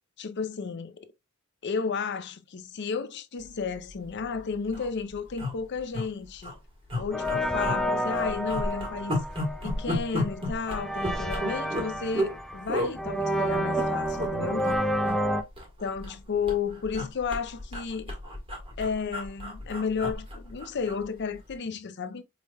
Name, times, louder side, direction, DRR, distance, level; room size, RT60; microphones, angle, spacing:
voice 1, 0.2-1.1 1.6-6.5 7.0-9.2 9.6-14.7 15.8-18.1 18.8-22.2, left 5 dB, 55° left, 0.5 m, -32 dB
sound 1, 3.9-4.1 4.4-4.5 4.6-4.9 5.4-6.0 6.4-6.5 6.9-7.8 8.1-12.3 12.7-12.9 13.5-14.3 14.6-14.8 15.0-16.2 16.5-21.0 21.4-21.5, left 1 dB, 25° right, 1.5 m, -32 dB
sound 2, 7.1-15.4, equal, ahead, 0.4 m, -30 dB
4.8 x 3.1 x 2.2 m
head